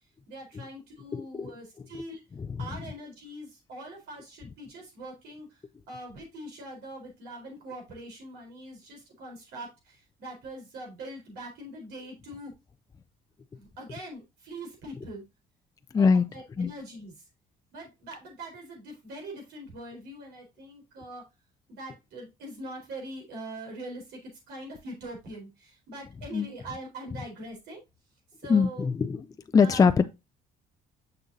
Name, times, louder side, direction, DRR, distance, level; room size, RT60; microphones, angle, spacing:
voice 1, 0.3-2.2 2.6-5.5 5.9-12.5 13.6-15.2 15.9-17.1 17.7-21.3 21.7-27.8 28.4-28.9 29.6-29.8, right 1 dB, 75° right, 3.9 m, -42 dB
voice 2, 1.1-1.5 2.6-2.7 15.9-16.2 16.6-16.7 26.3-26.5 28.5-29.2 29.5-30.0, left 5 dB, 20° left, 0.4 m, -22 dB
6.6 x 6.1 x 2.7 m
cardioid pair, 110°, 17 cm